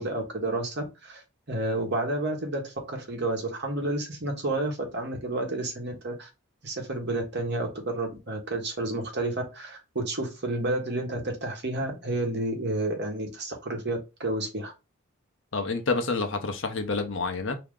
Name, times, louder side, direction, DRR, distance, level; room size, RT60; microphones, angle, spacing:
voice 1, 0.0-6.3 6.6-14.7, right 2 dB, 50° right, 1.3 m, -30 dB
voice 2, 15.5-17.6, left 3 dB, 55° left, 0.8 m, -28 dB
4.7 x 2.9 x 3.7 m
head